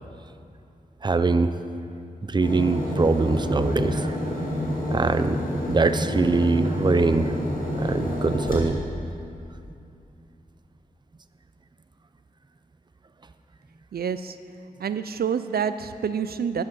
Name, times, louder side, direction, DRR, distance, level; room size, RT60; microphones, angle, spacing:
voice 1, 1.0-1.6 2.2-4.2 4.9-5.4 5.7-7.3 7.7-8.8, right 3 dB, 30° right, 10 dB, 0.5 m, -22 dB
sound 1, 2.4-8.6, left 1 dB, 60° left, 2.5 m, -28 dB
voice 2, 13.9-14.4 14.8-16.6, right 7 dB, 80° right, 12 dB, 0.4 m, -27 dB
10.5 x 10.5 x 6.3 m, 2.6 s
wide cardioid pair, 75°, 16 cm